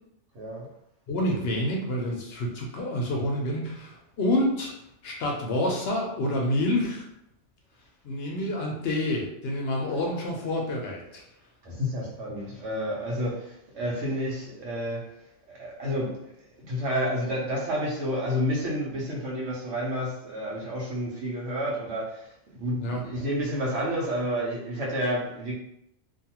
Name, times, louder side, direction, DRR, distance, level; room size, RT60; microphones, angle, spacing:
voice 1, 0.3-0.7 9.9-10.2 11.6-15.1 15.5-16.3 16.6-22.3 22.6-25.5, equal, 80° right, -4 dB, 1.1 m, -30 dB
voice 2, 1.1-4.7 5.0-7.1 8.0-11.2 22.8-23.0, left 1 dB, 65° left, -1 dB, 0.8 m, -28 dB
2.6 x 2.4 x 2.8 m, 0.78 s
omnidirectional pair, 1.2 m